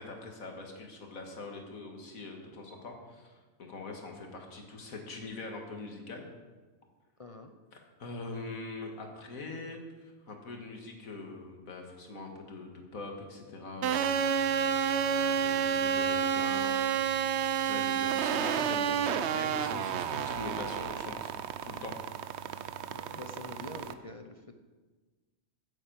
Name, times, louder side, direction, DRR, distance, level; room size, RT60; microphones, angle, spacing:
voice 1, 0.0-6.3 7.7-14.2 15.1-16.7 17.6-21.3 21.6-22.0, left 3 dB, 70° left, 2 dB, 2.1 m, -43 dB
voice 2, 7.2-7.5 22.9-24.6, left 2 dB, 35° left, 6 dB, 0.5 m, -46 dB
sound 1, 13.8-23.9, right 8 dB, 60° right, 0.8 m, -30 dB
9.7 x 7.8 x 7.6 m, 1.3 s
omnidirectional pair, 1.5 m